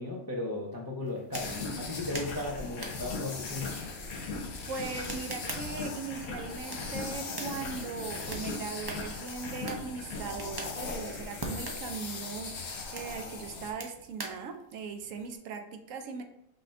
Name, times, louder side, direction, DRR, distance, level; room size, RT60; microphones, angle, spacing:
voice 1, 0.0-3.8, left 2 dB, 25° left, -2 dB, 0.4 m, -36 dB
sound 1, 1.0-15.3, right 2 dB, 35° right, 0.3 m, -45 dB
sound 2, 1.3-10.3, left 3 dB, 80° left, 1.3 m, -41 dB
sound 3, 1.3-13.7, left 4 dB, 55° left, 0.9 m, -41 dB
voice 2, 4.7-16.2, right 5 dB, 70° right, 6 dB, 0.9 m, -39 dB
5.7 x 2.7 x 3.3 m, 0.80 s
omnidirectional pair, 1.5 m